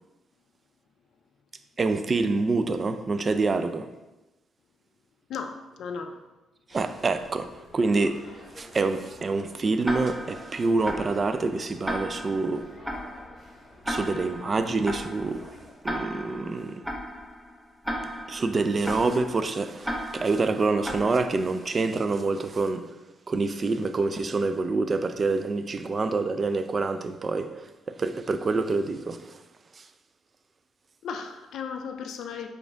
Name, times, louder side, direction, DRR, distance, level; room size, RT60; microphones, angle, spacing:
voice 1, 1.8-3.9 6.7-12.6 13.9-15.5 15.8-16.8 18.3-22.9 23.3-29.4 29.7-29.9, right 3 dB, 35° right, 0.3 m, -27 dB
voice 2, 5.3-6.2 31.0-32.5, left 6 dB, 70° left, 0.3 m, -35 dB
sound 1, 6.7-15.7, left 1 dB, 35° left, 1.0 m, -50 dB
Tick-tock, 9.8-21.7, equal, ahead, 0.6 m, -36 dB
4.9 x 2.6 x 3.4 m
cardioid pair, 90°, 0 cm